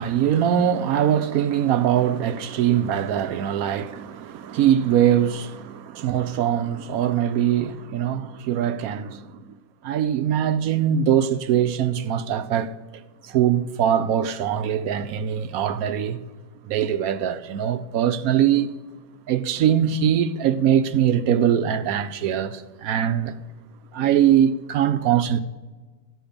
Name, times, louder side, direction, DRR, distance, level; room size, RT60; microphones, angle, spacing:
voice 1, 0.0-9.4 9.8-12.7 13.2-16.2 16.6-18.7 19.3-23.4 23.9-25.4, right 9 dB, 70° right, 0.9 m, -22 dB
14.0 x 7.8 x 5.1 m
omnidirectional pair, 1.8 m